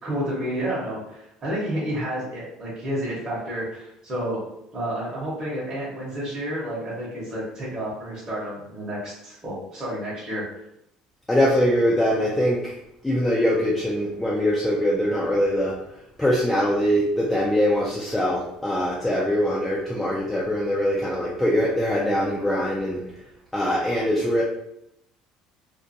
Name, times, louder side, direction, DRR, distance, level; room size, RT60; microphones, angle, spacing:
voice 1, 0.0-4.4 4.7-10.4, equal, 30° right, -8 dB, 0.9 m, -30 dB
voice 2, 11.3-12.7 13.0-15.7 16.2-23.0 23.5-24.4, equal, 5° left, -5 dB, 0.4 m, -22 dB
2.5 x 2.1 x 2.6 m, 0.80 s
cardioid pair, 140°, 2 cm